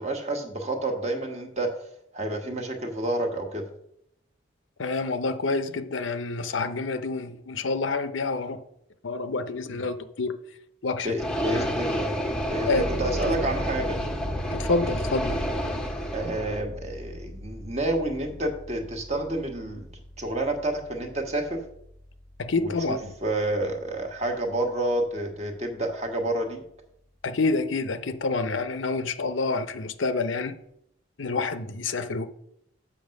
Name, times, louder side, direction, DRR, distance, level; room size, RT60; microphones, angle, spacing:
voice 1, 0.0-1.7 2.1-3.6 9.7-9.9 11.0-14.0 16.1-19.9 20.2-21.6 22.6-22.9 23.2-26.6, right 1 dB, 35° right, 1.4 m, -29 dB
voice 2, 4.8-8.6 9.0-10.4 10.8-11.1 11.5-11.7 12.7-12.9 13.3-13.4 14.5-15.4 22.4-23.1 27.2-30.6 31.2-32.3, left 3 dB, 75° left, 0.7 m, -28 dB
sound 1, 11.2-16.6, equal, 5° left, 0.8 m, -30 dB
sound 2, 12.7-25.2 25.6-25.7, left 1 dB, 85° right, 1.5 m, -39 dB
7.1 x 5.7 x 6.4 m
head